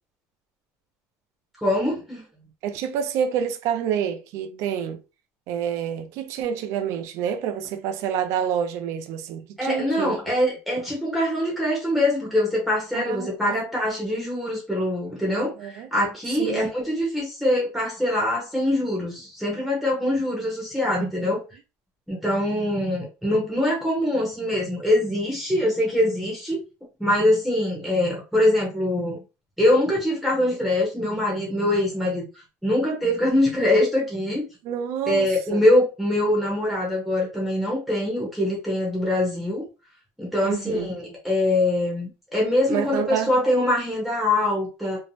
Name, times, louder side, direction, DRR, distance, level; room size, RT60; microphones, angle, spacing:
voice 1, 1.6-2.2 9.6-21.4 22.1-26.6 27.0-29.2 29.6-34.5 35.1-39.6 40.2-45.0, left 1 dB, ahead, 0.7 m, -23 dB
voice 2, 2.6-5.0 5.5-10.2 12.9-13.7 15.4-15.9 16.4-16.6 21.0-21.4 34.6-35.6 40.4-40.9 42.7-43.3, right 8 dB, 50° right, 0.3 m, -28 dB
2.6 x 2.0 x 2.9 m
cardioid pair, 170°, 6 cm